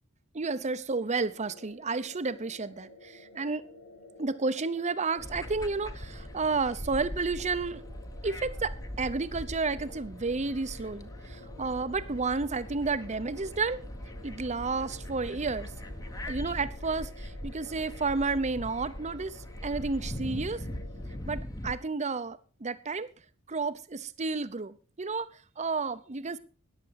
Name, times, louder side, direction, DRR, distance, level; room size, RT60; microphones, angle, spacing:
voice 1, 0.3-3.7 4.2-7.8 8.2-13.8 14.2-15.7 16.3-20.6 21.3-23.1 23.5-25.3 25.6-26.4, right 4 dB, 35° right, 14 dB, 0.8 m, -31 dB
sound 1, 1.2-21.1, left 2 dB, 65° left, 6.4 m, -53 dB
sound 2, 5.2-21.7, equal, 15° left, 1.0 m, -41 dB
14.0 x 10.0 x 4.7 m, 0.36 s
head